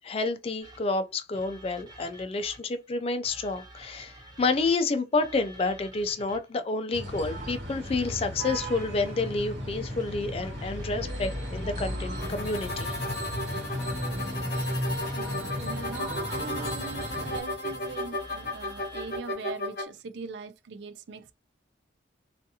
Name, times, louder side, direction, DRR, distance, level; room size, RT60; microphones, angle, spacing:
voice 1, 0.0-12.9, left 3 dB, 30° left, 0.3 m, -29 dB
sound 1, 0.6-2.8 3.2-6.6 7.1-9.2 9.9-13.7 14.4-19.3, equal, 25° right, 0.7 m, -50 dB
sound 2, 6.9-17.4, equal, 90° right, 1.2 m, -35 dB
sound 3, 12.2-19.8, left 1 dB, 60° left, 0.8 m, -34 dB
voice 2, 14.8-21.3, right 5 dB, 70° right, 0.4 m, -41 dB
2.5 x 2.4 x 2.7 m
head